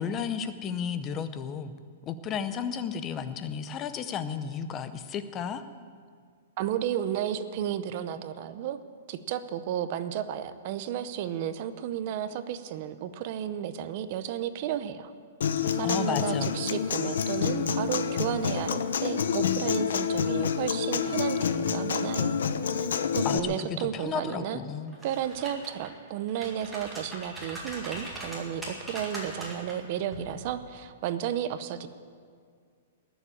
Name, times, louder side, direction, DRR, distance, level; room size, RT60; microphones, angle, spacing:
voice 1, 0.0-1.7 2.0-5.6 15.8-16.5 23.2-24.9, left 7 dB, 15° left, 11 dB, 0.6 m, -33 dB
voice 2, 6.6-8.8 9.1-15.1 15.8-22.4 23.1-24.6 25.0-31.9, right 10 dB, 30° right, 12 dB, 0.6 m, -33 dB
Human voice / Acoustic guitar, 15.4-23.4, left 7 dB, 75° left, 0.9 m, -28 dB
sound 1, 24.9-25.9 26.3-29.7 30.1-30.3, right 1 dB, 5° right, 2.0 m, -40 dB
19.0 x 7.2 x 9.9 m, 2.1 s
hypercardioid pair, 180°, 0 cm